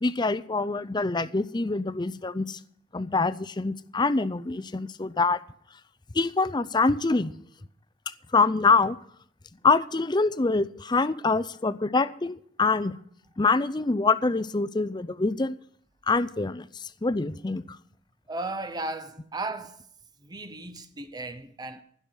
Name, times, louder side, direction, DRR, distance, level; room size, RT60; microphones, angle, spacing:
voice 1, 0.0-2.6 2.9-5.4 6.1-7.3 8.3-9.0 9.6-13.0 13.4-15.6 16.1-17.6, left 3 dB, 25° left, 0.5 m, -25 dB
voice 2, 18.3-19.9 20.2-21.8, right 2 dB, 20° right, 0.7 m, -35 dB
15.5 x 6.3 x 9.1 m
head